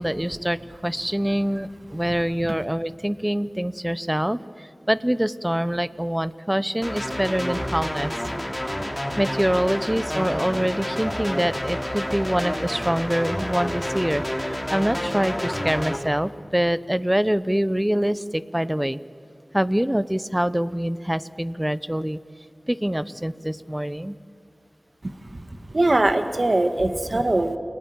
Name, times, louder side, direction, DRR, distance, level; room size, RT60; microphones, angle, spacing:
voice 1, 0.0-8.1 9.2-19.0 19.5-22.2 22.7-24.2, equal, 10° right, 16 dB, 0.9 m, -25 dB
sound 1, 6.8-16.0, equal, 10° left, 3.5 m, -29 dB
voice 2, 25.5-27.6, right 2 dB, 50° right, 8 dB, 1.8 m, -22 dB
29.5 x 21.0 x 8.9 m, 2.3 s
wide cardioid pair, 50°, 0 cm